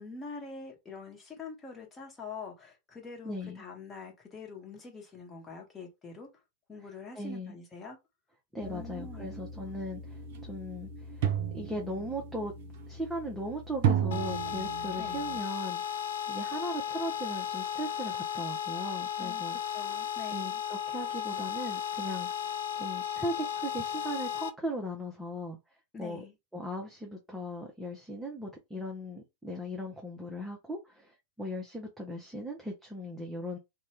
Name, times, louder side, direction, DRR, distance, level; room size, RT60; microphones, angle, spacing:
voice 1, 0.0-6.3 6.7-8.0 8.6-9.4 15.0-15.2 19.2-19.4 19.7-20.6 25.9-26.3, left 4 dB, 20° left, 1.1 m, -45 dB
voice 2, 3.2-3.6 7.1-7.6 8.5-12.5 12.9-15.8 16.3-19.6 20.3-25.6 26.0-26.2 26.5-33.6, equal, 5° right, 0.7 m, -38 dB
sound 1, 8.6-15.4, right 8 dB, 50° right, 0.6 m, -34 dB
sound 2, 14.1-24.5, left 9 dB, 60° left, 0.4 m, -35 dB
2.5 x 2.2 x 3.4 m
figure-of-eight pair, 90°, 0 cm